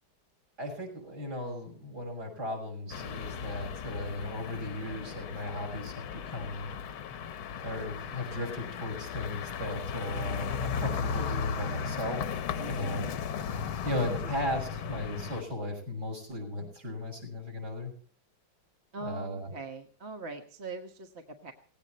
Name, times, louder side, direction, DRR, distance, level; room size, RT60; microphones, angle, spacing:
voice 1, 0.6-6.1 6.3-6.7 7.6-13.1 13.8-17.9 19.0-19.5, left 1 dB, 50° right, 4 dB, 6.6 m, -36 dB
sound 1, 2.9-15.4, left 7 dB, 85° left, 1.9 m, -36 dB
voice 2, 12.6-13.1 14.1-14.2 18.9-21.5, right 3 dB, 35° right, 5 dB, 1.4 m, -42 dB
18.0 x 17.0 x 4.2 m, 0.43 s
omnidirectional pair, 2.2 m